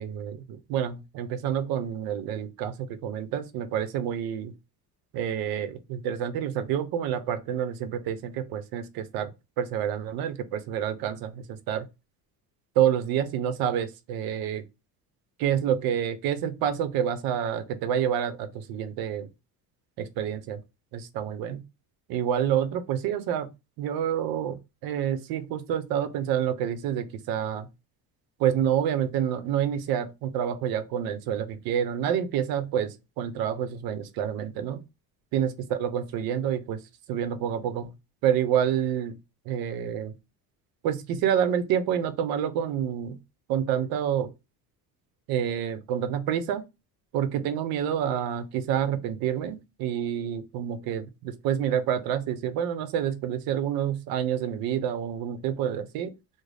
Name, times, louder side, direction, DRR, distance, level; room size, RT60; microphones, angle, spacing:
voice 1, 0.0-4.5 5.1-9.3 9.6-11.9 12.8-14.6 15.4-19.3 20.0-20.6 20.9-21.6 22.1-23.5 23.8-27.7 28.4-34.8 35.3-36.8 37.1-37.9 38.2-39.2 39.5-40.1 40.8-43.2 43.5-44.3 45.3-46.6 47.1-56.1, right 9 dB, 70° right, 0.6 m, -28 dB
3.8 x 2.0 x 3.2 m
cardioid pair, 155°, 38 cm